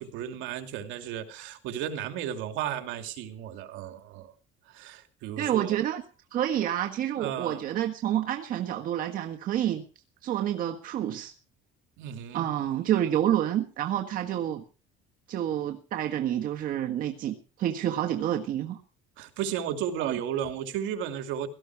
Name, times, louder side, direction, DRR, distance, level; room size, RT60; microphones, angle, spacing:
voice 1, 0.0-4.3 4.7-5.8 7.2-7.6 12.0-12.5 19.2-21.5, right 9 dB, 65° right, 6 dB, 2.7 m, -34 dB
voice 2, 5.4-6.0 6.3-9.8 10.2-11.3 12.3-14.6 15.3-18.8 20.0-20.2, right 11 dB, 40° right, 3 dB, 1.5 m, -28 dB
17.5 x 13.5 x 4.8 m, 0.36 s
cardioid pair, 175°, 21 cm